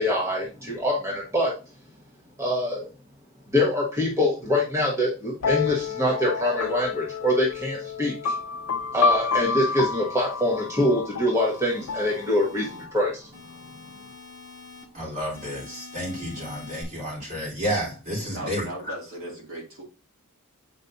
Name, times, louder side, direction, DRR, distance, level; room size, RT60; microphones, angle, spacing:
voice 1, 0.0-1.5 2.4-2.9 3.5-8.4 8.9-13.3, left 1 dB, 15° right, -4 dB, 1.3 m, -24 dB
sound 1, 5.4-13.0, left 5 dB, 70° left, 0.5 m, -29 dB
sound 2, 9.7-10.8 11.3-12.8 13.3-14.8 15.3-16.8, left 4 dB, 80° right, 3.8 m, -47 dB
voice 2, 14.9-18.6, equal, 40° right, -5 dB, 3.7 m, -31 dB
voice 3, 18.3-19.8, right 1 dB, 65° right, -3 dB, 2.5 m, -37 dB
8.1 x 5.4 x 2.7 m, 0.32 s
head